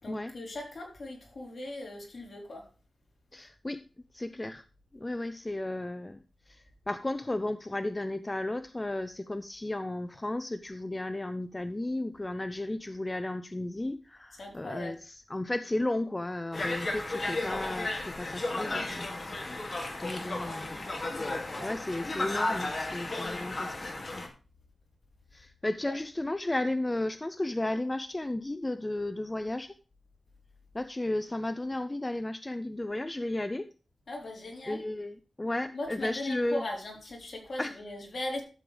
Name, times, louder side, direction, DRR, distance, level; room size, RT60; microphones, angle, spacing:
voice 1, 0.0-2.7 14.3-15.0 21.5-21.8 25.9-26.0 34.1-34.9 35.7-38.4, left 1 dB, 55° left, 0 dB, 4.3 m, -39 dB
voice 2, 3.3-3.8 4.1-4.6 4.9-6.2 6.5-19.1 20.0-20.8 21.6-24.2 25.3-29.7 30.7-33.7 34.7-36.6 37.6-37.7, left 1 dB, 20° left, 11 dB, 0.5 m, -34 dB
Conversation, 16.5-24.3, left 2 dB, 40° left, 2.4 m, -34 dB
13.0 x 7.8 x 3.4 m, 0.35 s
wide cardioid pair, 110°, 0 cm